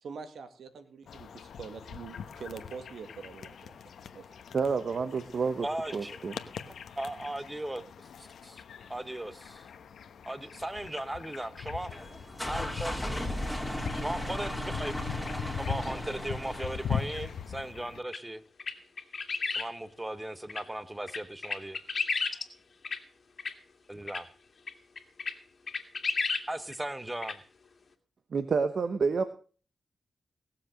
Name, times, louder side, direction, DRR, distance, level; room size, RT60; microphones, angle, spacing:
voice 1, 0.0-3.8 4.1-4.3, right 5 dB, 80° right, 9 dB, 2.0 m, -44 dB
sound 1, 1.1-18.0, left 7 dB, 80° left, 1.1 m, -41 dB
voice 2, 4.5-5.7 5.9-6.4 28.3-29.2, right 5 dB, 65° right, 10 dB, 1.0 m, -28 dB
voice 3, 5.6-6.3 7.0-8.1 8.4-8.6 8.9-9.7 10.2-11.9 12.4-13.0 13.9-14.9 15.5-18.4 19.5-21.8 23.9-24.3 26.5-27.4, right 1 dB, 15° right, 13 dB, 1.0 m, -37 dB
sound 2, 11.9-17.5, left 1 dB, 5° left, 3.2 m, -36 dB
sound 3, 18.1-18.2 18.6-19.7 20.5-20.6 21.1-22.4 22.8-23.0 23.4-23.5 24.1-24.2 24.7-24.8 25.0-25.3 25.7-26.4 26.7-26.8 27.2-27.3, left 4 dB, 50° left, 2.2 m, -32 dB
19.0 x 7.5 x 6.3 m, 0.41 s
cardioid pair, 65°, 0 cm